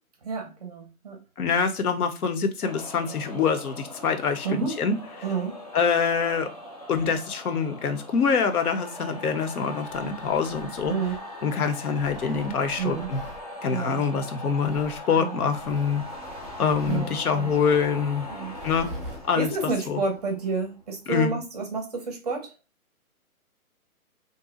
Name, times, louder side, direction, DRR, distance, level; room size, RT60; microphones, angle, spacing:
voice 1, 0.2-1.2 4.4-4.7 5.2-5.6 10.8-11.2 12.8-13.1 13.7-14.0 15.2-15.4 16.9-17.5 18.3-18.5 19.3-22.5, right 4 dB, 30° right, 0.5 m, -30 dB
voice 2, 1.4-5.0 5.7-6.5 6.9-11.0 11.4-13.2 13.6-16.0 16.6-18.3 18.6-19.0 19.3-19.5 19.9-20.0 21.1-21.3, left 6 dB, 80° left, 0.8 m, -25 dB
sound 1, 2.6-21.2, left 1 dB, 30° left, 0.3 m, -41 dB
Tearing, 9.8-11.5 12.0-13.4 14.5-15.0 15.5-17.1 18.4-19.2, equal, ahead, 0.8 m, -43 dB
2.6 x 2.1 x 3.8 m
hypercardioid pair, 155°, 44 cm